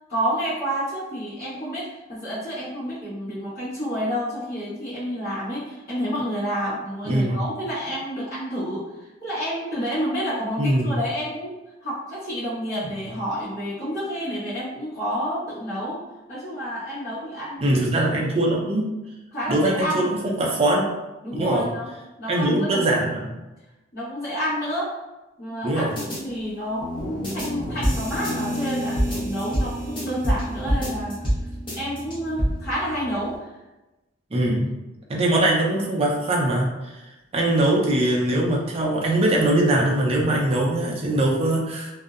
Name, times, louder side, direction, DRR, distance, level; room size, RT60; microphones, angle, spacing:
voice 1, 0.1-11.5 11.8-16.0 16.3-17.6 19.3-20.1 21.2-21.9 22.2-22.9 23.9-25.0 25.4-31.3 31.8-33.5, equal, 50° left, -15 dB, 1.0 m, -29 dB
voice 2, 7.0-7.4 10.6-10.9 17.6-18.9 19.5-20.9 21.3-21.7 22.3-23.2 25.6-25.9 34.3-34.7 35.1-36.9 37.3-41.9, right 1 dB, 30° right, -2 dB, 0.4 m, -22 dB
sound 1, 26.0-26.2 27.2-27.5 27.8-30.4 30.7-31.4 31.7-32.5, equal, 25° left, 0.7 m, -26 dB
Guitar, 26.8-33.4, equal, 85° left, 1.0 m, -33 dB
2.6 x 2.0 x 2.4 m, 1.0 s
head